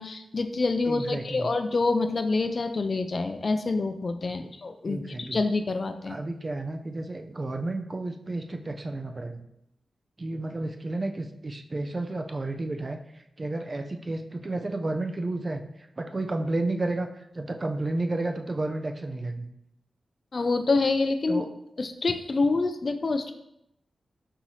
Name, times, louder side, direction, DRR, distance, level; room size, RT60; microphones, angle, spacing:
voice 1, 0.0-6.2 20.3-21.4 21.8-23.3, left 3 dB, 55° left, 8 dB, 0.4 m, -27 dB
voice 2, 0.9-1.5 4.9-5.4 6.1-9.4 10.2-17.1 17.3-19.5 21.3-21.5, right 2 dB, 40° right, 5 dB, 0.5 m, -32 dB
5.4 x 2.8 x 3.1 m, 0.79 s
cardioid pair, 50°, 0 cm